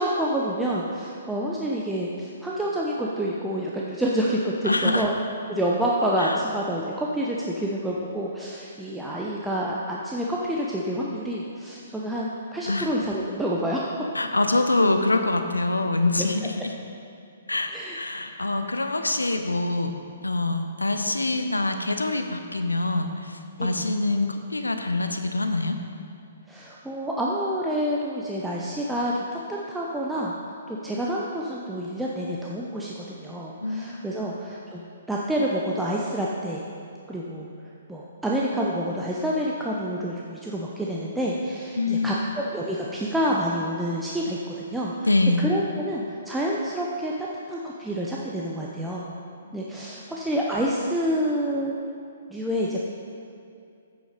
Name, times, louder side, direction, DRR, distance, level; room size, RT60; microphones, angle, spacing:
voice 1, 0.0-5.1 5.5-13.8 16.2-16.3 17.7-18.0 23.6-23.9 26.5-30.3 30.7-36.6 37.1-37.5 37.9-45.1 45.4-49.1 49.5-51.7 52.3-52.8, equal, 5° right, -5 dB, 0.7 m, -28 dB
voice 2, 4.7-5.0 6.2-6.3 12.7-12.9 14.1-16.5 17.5-17.7 18.0-19.9 20.2-23.1 23.6-25.8 33.6-34.1 41.8-42.3 45.1-45.5 49.5-49.6, left 2 dB, 90° left, 6 dB, 0.8 m, -24 dB
9.0 x 7.0 x 5.1 m, 2.5 s
figure-of-eight pair, 125°, 0 cm